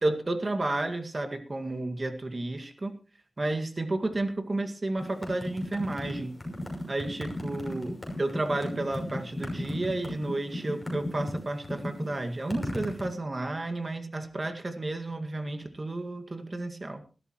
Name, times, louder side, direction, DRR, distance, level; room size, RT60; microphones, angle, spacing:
voice 1, 0.0-3.0 3.4-6.3 6.9-17.0, right 2 dB, 45° right, 7 dB, 2.0 m, -32 dB
sound 1, 5.0-13.1, left 1 dB, 15° left, 6.1 m, -35 dB
19.5 x 13.0 x 3.1 m, 0.34 s
wide cardioid pair, 55°, 0 cm